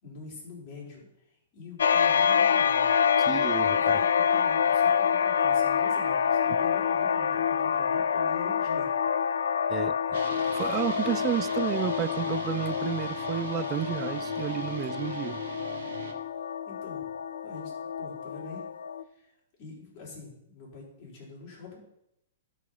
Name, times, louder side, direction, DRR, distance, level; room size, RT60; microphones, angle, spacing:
voice 1, 0.0-2.9 3.6-3.8 4.1-8.9 16.7-17.1 17.4-17.7 18.0-18.6 19.0-19.3 19.6-21.8, left 4 dB, 40° left, 4.3 m, -45 dB
sound 1, 1.8-19.0, left 7 dB, 85° left, 0.4 m, -27 dB
voice 2, 3.2-4.0 9.7-15.4, right 12 dB, 25° right, 0.3 m, -32 dB
sound 2, 10.1-16.1, right 3 dB, 70° right, 1.4 m, -41 dB
12.5 x 4.9 x 5.6 m
hypercardioid pair, 145°, 0 cm